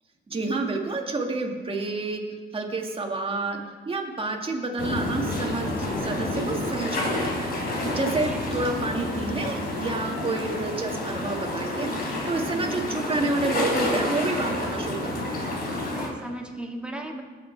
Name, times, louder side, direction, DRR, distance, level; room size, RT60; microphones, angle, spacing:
voice 1, 0.3-2.2 2.5-15.5, right 3 dB, 25° right, 2 dB, 2.0 m, -29 dB
sound 1, 4.8-16.1, left 1 dB, 50° left, 3.9 m, -29 dB
voice 2, 8.0-8.4 12.5-12.9 15.8-17.2, right 1 dB, 5° right, 1 dB, 1.9 m, -37 dB
20.5 x 6.9 x 4.6 m, 1.5 s
cardioid pair, 90°, 20 cm